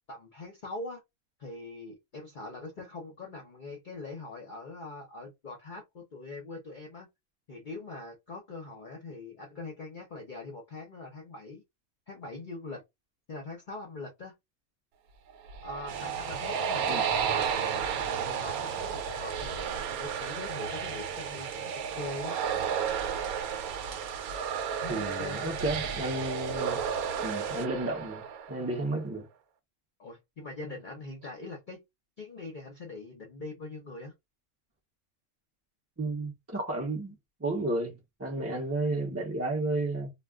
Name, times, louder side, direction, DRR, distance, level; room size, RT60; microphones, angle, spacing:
voice 1, 0.1-1.0 1.4-7.1 7.5-11.6 12.1-12.8 13.3-14.4 15.6-22.4 24.8-25.5 30.0-31.8 32.2-34.1, left 2 dB, 45° left, 0.7 m, -42 dB
sound 1, 15.3-28.9, right 7 dB, 85° right, 1.0 m, -33 dB
sound 2, 15.9-27.7, right 6 dB, 65° right, 0.8 m, -44 dB
voice 2, 24.9-26.9 27.2-28.2 28.5-29.3 36.0-40.1, right 2 dB, 20° right, 0.3 m, -32 dB
2.3 x 2.2 x 3.4 m
omnidirectional pair, 1.5 m